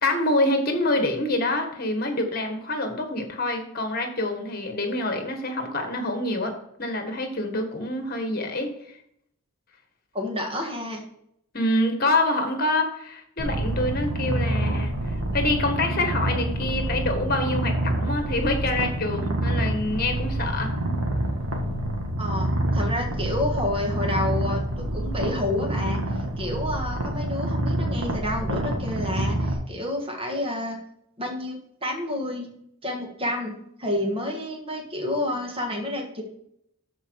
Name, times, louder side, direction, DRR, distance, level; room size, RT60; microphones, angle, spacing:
voice 1, 0.0-6.5 6.8-9.0 11.5-20.7, left 2 dB, 45° left, 5 dB, 1.5 m, -26 dB
voice 2, 10.1-11.0 22.2-26.0 26.4-30.8 31.2-32.5 32.8-36.2, left 1 dB, 25° right, 1 dB, 1.6 m, -29 dB
Purr, 13.4-29.5, right 1 dB, 80° right, 1.8 m, -27 dB
12.5 x 4.5 x 4.6 m, 0.73 s
head